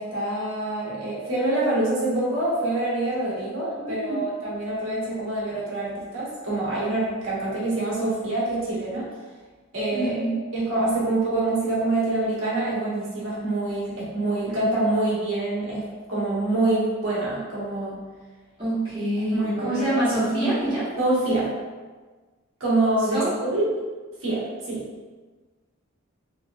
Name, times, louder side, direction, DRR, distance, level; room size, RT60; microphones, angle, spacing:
voice 1, 0.0-9.1 9.7-10.2 10.5-18.0 19.3-20.0 21.0-21.6 22.6-23.7 24.2-24.8, right 2 dB, 70° right, -7 dB, 1.1 m, -26 dB
voice 2, 3.7-4.2 9.9-10.4 18.6-20.8 23.1-23.3, right 1 dB, 20° right, -12 dB, 1.2 m, -25 dB
3.1 x 2.9 x 2.3 m, 1.4 s
head